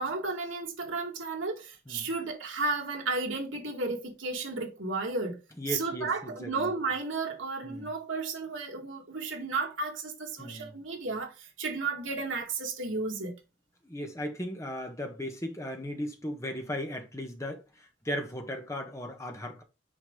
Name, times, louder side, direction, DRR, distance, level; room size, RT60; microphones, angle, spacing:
voice 1, 0.0-5.4 5.7-13.3, right 3 dB, 85° right, 2.1 m, -33 dB
voice 2, 5.6-6.7 7.6-7.9 10.4-10.7 13.8-19.6, equal, 15° left, 1.3 m, -37 dB
6.3 x 5.2 x 3.8 m
head